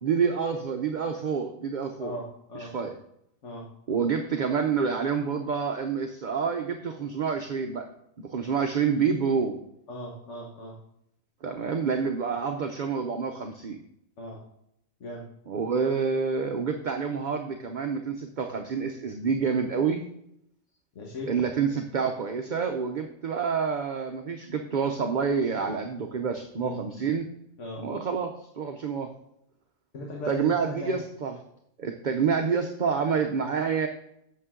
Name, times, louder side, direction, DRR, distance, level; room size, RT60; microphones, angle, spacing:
voice 1, 0.0-2.2 2.7-2.9 3.9-7.9 8.3-9.6 11.4-13.8 15.5-20.0 21.3-27.3 27.8-29.1 30.3-31.4 31.8-33.9, right 6 dB, 45° right, 5 dB, 0.6 m, -28 dB
voice 2, 2.0-2.7 3.4-3.7 9.9-10.7 14.2-14.4 15.0-15.2 20.9-21.3 26.6-26.8 27.6-27.8 29.9-31.0, equal, 60° left, -1 dB, 1.6 m, -38 dB
8.5 x 6.7 x 3.7 m, 0.77 s
omnidirectional pair, 1.4 m